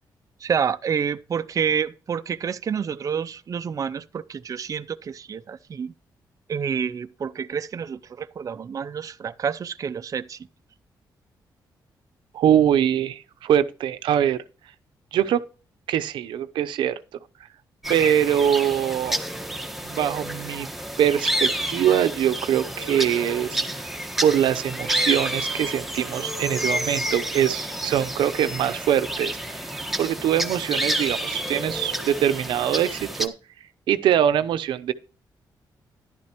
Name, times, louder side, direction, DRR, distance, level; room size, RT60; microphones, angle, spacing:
voice 1, 0.4-5.9 6.5-10.4, right 7 dB, 45° right, 0.5 m, -28 dB
voice 2, 12.3-14.4 15.1-15.4 15.9-17.0 17.9-19.2 19.8-20.7 21.0-23.6 24.2-29.7 30.0-33.3 33.9-34.9, right 10 dB, 90° right, 0.7 m, -23 dB
sound 1, 17.8-33.3, right 1 dB, 5° right, 1.3 m, -29 dB
11.5 x 11.0 x 3.0 m
cardioid pair, 85°, 8 cm